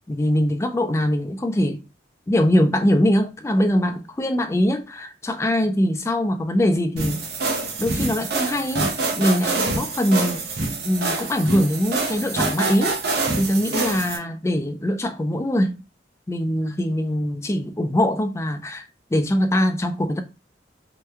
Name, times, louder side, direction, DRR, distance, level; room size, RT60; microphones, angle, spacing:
voice 1, 0.1-1.8 2.3-7.3 7.8-8.9 9.1-10.4 10.8-13.0 13.4-15.8 16.3-18.8 19.1-20.2, equal, 15° left, 0.3 m, -22 dB
sound 1, 7.0-14.2, right 3 dB, 55° right, 0.7 m, -26 dB
2.9 x 2.2 x 3.3 m
head